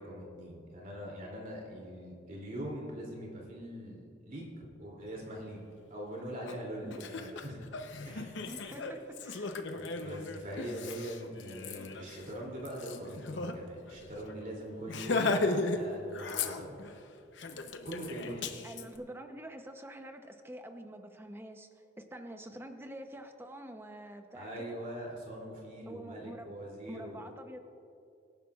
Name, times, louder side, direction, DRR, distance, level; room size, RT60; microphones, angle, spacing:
voice 1, 0.0-5.6 5.9-7.7 8.0-8.4 9.7-15.4 15.7-16.9 17.8-18.5 24.3-27.2, right 1 dB, 45° right, -2 dB, 2.9 m, -42 dB
Laughter, 6.5-6.6 6.9-13.5 13.9-14.0 14.3-14.5 14.9-15.8 16.1-16.9 17.4-18.8, left 3 dB, 70° left, 0.8 m, -36 dB
voice 2, 8.5-9.6 18.6-24.8 25.9-26.6 26.9-27.6, right 1 dB, 10° right, 6 dB, 0.8 m, -46 dB
24.0 x 10.5 x 2.4 m, 2.5 s
head